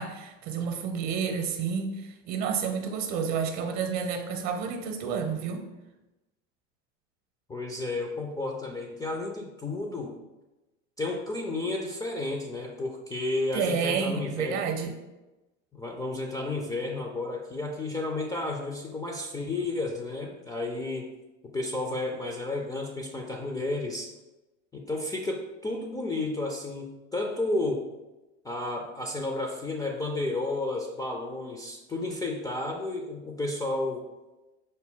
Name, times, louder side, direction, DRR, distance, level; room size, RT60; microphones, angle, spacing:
voice 1, 0.0-5.7 13.5-14.9, right 6 dB, 50° right, 6 dB, 0.8 m, -30 dB
voice 2, 7.5-10.2 11.0-14.6 15.7-21.1 21.5-24.1 24.7-27.9 28.4-34.1, left 2 dB, 10° left, 1 dB, 0.4 m, -32 dB
5.2 x 2.2 x 3.6 m, 1.0 s
hypercardioid pair, 90°, 37 cm